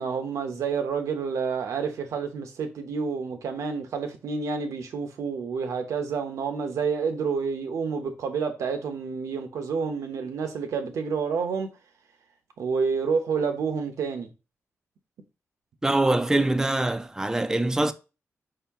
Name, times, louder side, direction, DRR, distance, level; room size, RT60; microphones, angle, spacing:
voice 1, 0.0-11.7 12.6-14.3, right 5 dB, 90° right, 0.8 m, -29 dB
voice 2, 15.8-17.9, right 2 dB, 10° right, 0.4 m, -23 dB
5.0 x 2.8 x 3.5 m
cardioid pair, 95°, 5 cm